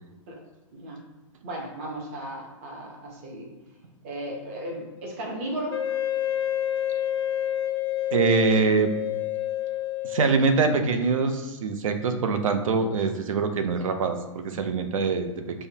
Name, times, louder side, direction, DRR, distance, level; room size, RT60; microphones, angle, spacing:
voice 1, 0.7-1.0 1.4-3.5 4.0-5.8, right 1 dB, 20° right, 0 dB, 0.5 m, -35 dB
Wind instrument woodwind instrument, 5.7-10.8, left 12 dB, 45° left, 0.4 m, -28 dB
voice 2, 8.1-8.9 10.0-15.7, right 4 dB, 85° right, 7 dB, 0.5 m, -24 dB
5.5 x 2.1 x 2.7 m, 1.2 s
hypercardioid pair, 180°, 17 cm